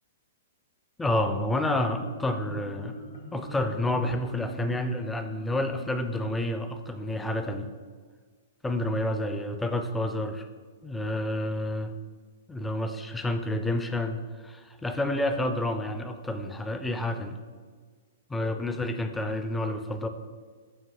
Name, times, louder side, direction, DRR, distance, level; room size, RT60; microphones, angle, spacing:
voice 1, 1.0-3.0 3.3-7.7 8.6-10.5 10.8-11.9 12.5-17.4 18.3-20.1, left 1 dB, 10° left, 7 dB, 0.4 m, -29 dB
Marimba xylophone, 1.6-7.1, left 3 dB, 80° left, 1.0 m, -45 dB
5.3 x 4.7 x 3.9 m, 1.5 s
hypercardioid pair, 130°, 0 cm